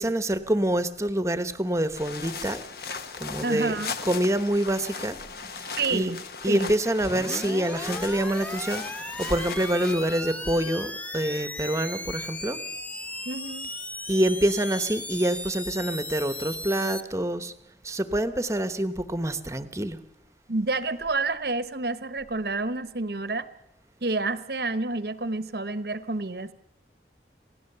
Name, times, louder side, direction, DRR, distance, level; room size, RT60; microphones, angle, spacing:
voice 1, 0.0-2.6 3.2-3.8 4.1-5.2 5.5-6.1 6.4-12.6 14.1-17.5 17.8-20.0, right 1 dB, 15° right, 11 dB, 1.0 m, -26 dB
sound 1, 1.9-10.0, left 5 dB, 60° left, 1.2 m, -38 dB
voice 2, 3.4-4.0 5.8-6.2 6.5-6.7 13.2-13.7 20.5-23.5 24.0-26.5, right 3 dB, 65° right, 13 dB, 1.0 m, -29 dB
sound 2, 7.0-17.0, left 1 dB, 10° left, 0.7 m, -36 dB
27.5 x 17.0 x 6.8 m, 0.84 s
head